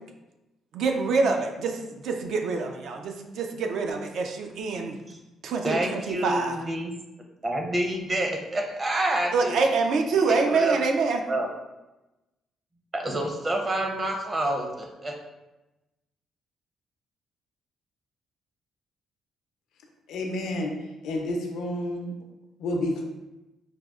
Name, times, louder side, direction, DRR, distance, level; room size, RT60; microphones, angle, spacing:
voice 1, 0.7-5.0 5.4-6.6 9.3-11.2, right 4 dB, 75° right, 4 dB, 0.4 m, -25 dB
voice 2, 5.6-6.9 7.4-9.5 10.3-10.8 11.3-11.5 12.9-15.1, right 1 dB, 30° right, 2 dB, 0.6 m, -28 dB
voice 3, 20.1-20.7 21.0-22.1 22.6-23.0, left 1 dB, 85° left, 2 dB, 0.5 m, -29 dB
4.8 x 2.1 x 2.3 m, 1.0 s
cardioid pair, 90°, 0 cm